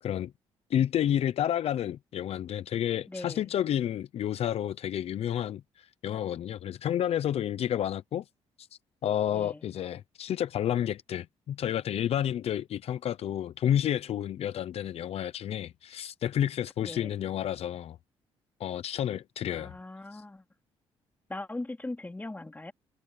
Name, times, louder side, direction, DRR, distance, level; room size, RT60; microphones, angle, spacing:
voice 1, 0.0-0.3 0.7-8.2 8.6-8.7 9.0-18.0 18.6-19.7 20.1-20.2, left 10 dB, 65° left, 0.7 m, -30 dB
voice 2, 3.1-3.5 9.3-9.6 16.8-17.1 19.5-20.4 21.3-22.7, left 2 dB, 15° left, 3.8 m, -40 dB
cardioid pair, 80°, 11 cm